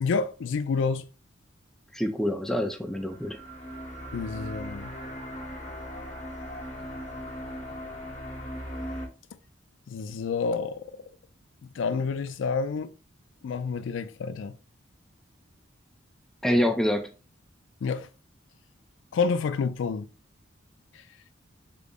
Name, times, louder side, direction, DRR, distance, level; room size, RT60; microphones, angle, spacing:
voice 1, 0.0-1.1 4.1-5.0 9.9-11.0 11.6-12.9 13.4-14.6 17.8-18.1 19.1-20.1, left 5 dB, 70° left, 0.3 m, -29 dB
voice 2, 1.9-3.4 16.4-17.1, equal, ahead, 0.4 m, -26 dB
sound 1, 2.9-9.1, equal, 40° left, 0.9 m, -38 dB
3.8 x 2.0 x 3.5 m
head